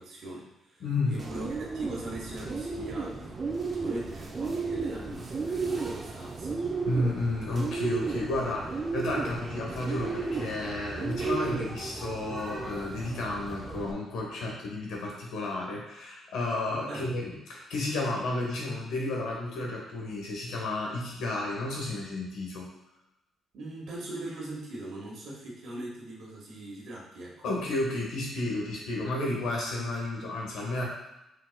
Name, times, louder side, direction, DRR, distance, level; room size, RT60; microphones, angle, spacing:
voice 1, 0.0-6.6 16.7-17.1 23.5-27.4, right 1 dB, 65° right, -3 dB, 1.5 m, -41 dB
voice 2, 0.8-1.2 6.8-22.7 27.4-30.8, left 2 dB, 80° left, -2 dB, 1.3 m, -32 dB
Bird, 1.2-13.9, right 4 dB, 35° right, 0.7 m, -34 dB
5.1 x 4.0 x 2.2 m, 0.92 s
cardioid pair, 90°, 0 cm